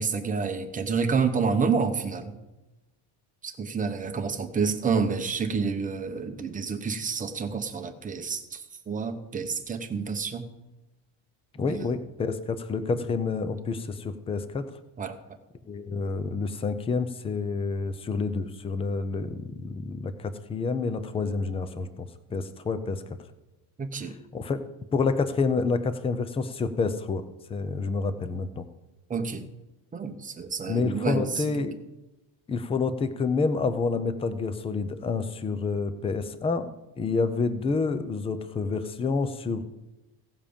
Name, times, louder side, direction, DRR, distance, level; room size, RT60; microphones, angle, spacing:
voice 1, 0.0-2.4 3.4-10.5 11.7-11.8 12.9-13.1 15.0-15.2 23.8-24.1 29.1-29.5 29.9-31.4, right 5 dB, 15° right, 6 dB, 0.8 m, -29 dB
voice 2, 11.5-14.7 15.7-23.0 24.0-24.6 24.9-27.2 27.5-28.6 30.7-31.8 32.5-36.7 37.0-39.6, left 4 dB, 15° left, 11 dB, 0.4 m, -28 dB
16.5 x 7.4 x 5.2 m, 1.0 s
cardioid pair, 175°, 46 cm